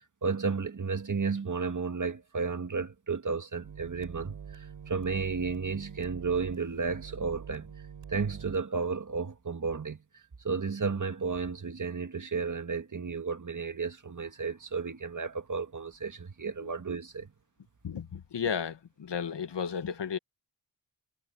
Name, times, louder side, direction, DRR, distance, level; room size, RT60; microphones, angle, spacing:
voice 1, 0.2-7.7 8.1-10.0 10.4-17.3, right 5 dB, 45° right, 2.0 m, -33 dB
sound 1, 3.6-8.6, right 7 dB, 85° right, 6.1 m, -45 dB
voice 2, 17.8-20.2, left 7 dB, 70° left, 1.8 m, -34 dB
cardioid pair, 55°, 43 cm